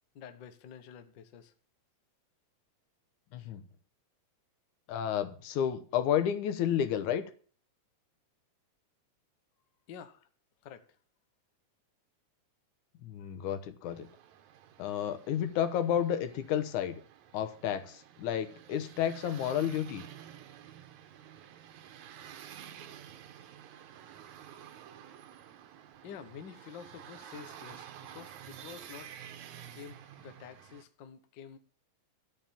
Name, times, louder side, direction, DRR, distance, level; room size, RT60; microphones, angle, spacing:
voice 1, 0.1-1.5 9.9-10.3 10.6-10.8 26.0-29.1 29.7-31.6, left 7 dB, 60° left, 9 dB, 1.2 m, -49 dB
voice 2, 3.3-3.6 4.9-7.2 13.0-14.1 14.8-17.0 17.3-20.0, left 9 dB, 85° left, 11 dB, 2.5 m, -31 dB
sound 1, 13.9-30.8, right 10 dB, 75° right, 2.3 m, -51 dB
13.0 x 5.0 x 8.8 m, 0.43 s
omnidirectional pair, 3.4 m